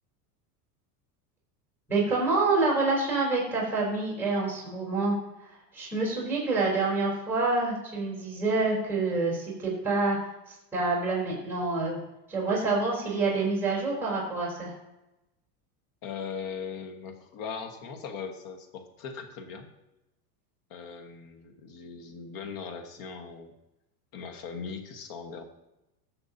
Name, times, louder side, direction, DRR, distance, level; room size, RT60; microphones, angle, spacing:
voice 1, 1.9-5.1 5.7-10.2 10.7-12.0 12.3-14.7, right 3 dB, 5° right, -4 dB, 3.7 m, -27 dB
voice 2, 16.0-19.7 20.7-23.5 24.1-25.4, left 6 dB, 45° left, 5 dB, 1.6 m, -39 dB
18.0 x 6.8 x 2.8 m, 0.94 s
supercardioid pair, 130°, 47 cm